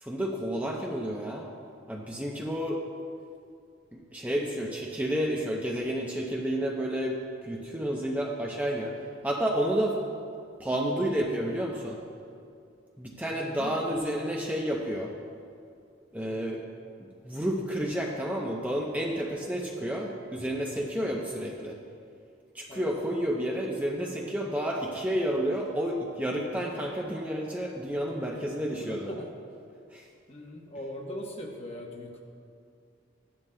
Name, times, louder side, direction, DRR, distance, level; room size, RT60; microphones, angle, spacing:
voice 1, 0.0-1.5 1.9-2.8 3.9-8.9 9.2-10.0 10.6-12.0 13.0-15.1 16.1-16.6 17.2-21.8 22.5-29.1 29.9-30.1, equal, 10° right, -1 dB, 0.6 m, -30 dB
voice 2, 13.4-14.3 16.2-16.6 21.0-21.2 22.7-22.9 28.8-29.3 30.3-32.2, left 1 dB, 30° left, 1 dB, 1.0 m, -41 dB
14.5 x 11.0 x 2.2 m, 2.3 s
head